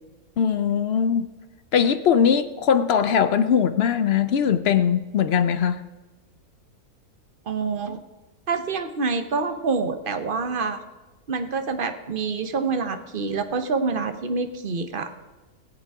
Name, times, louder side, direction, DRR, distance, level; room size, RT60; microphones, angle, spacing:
voice 1, 0.4-1.3 1.7-5.8, left 7 dB, 65° left, 0.6 m, -20 dB
voice 2, 7.5-8.0 8.5-10.8 11.3-15.1, right 4 dB, 40° right, 1.0 m, -26 dB
19.0 x 8.1 x 4.8 m
omnidirectional pair, 1.6 m